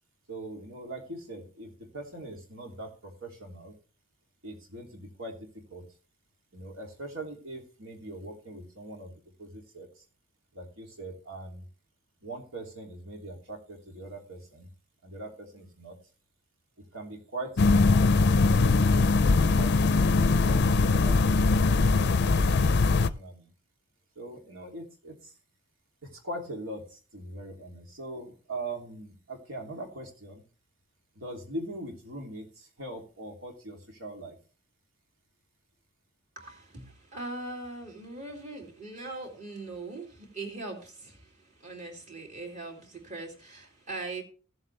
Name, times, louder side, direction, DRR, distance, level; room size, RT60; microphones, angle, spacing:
voice 1, 0.3-3.8 4.4-5.9 6.5-9.9 10.5-11.6 12.2-14.7 15.0-16.0 16.8-19.1 19.5-23.5 24.1-25.3 26.0-30.4 31.1-34.4, right 1 dB, 80° right, 2 dB, 3.0 m, -41 dB
sound 1, 17.6-23.1, left 3 dB, 55° left, 0.5 m, -21 dB
voice 2, 36.3-44.2, right 2 dB, 40° right, 1 dB, 3.1 m, -41 dB
15.5 x 7.8 x 3.3 m, 0.37 s
head